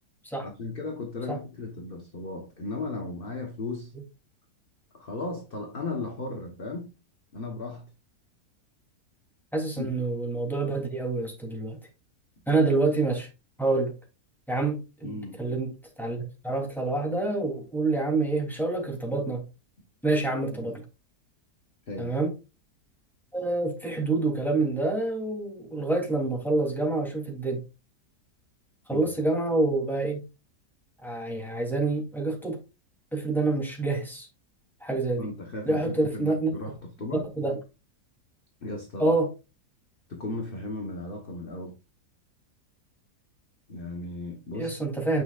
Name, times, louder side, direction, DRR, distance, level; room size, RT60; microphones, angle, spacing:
voice 1, 0.4-3.9 4.9-6.9 7.3-7.9 9.8-9.9 15.0-15.4 20.5-20.7 21.9-22.1 28.9-29.2 35.2-37.3 38.6-39.1 40.1-41.7 43.7-44.8, left 2 dB, 35° left, 1.3 m, -36 dB
voice 2, 9.5-11.8 12.5-13.3 13.6-13.9 14.5-15.7 16.0-19.4 20.0-20.8 22.0-22.3 23.3-27.6 28.9-30.2 31.0-32.6 33.1-34.3 34.8-35.3 35.6-36.5 37.1-37.5 39.0-39.3 44.5-45.2, right 3 dB, ahead, 3.1 m, -27 dB
9.4 x 6.2 x 2.5 m
omnidirectional pair, 1.8 m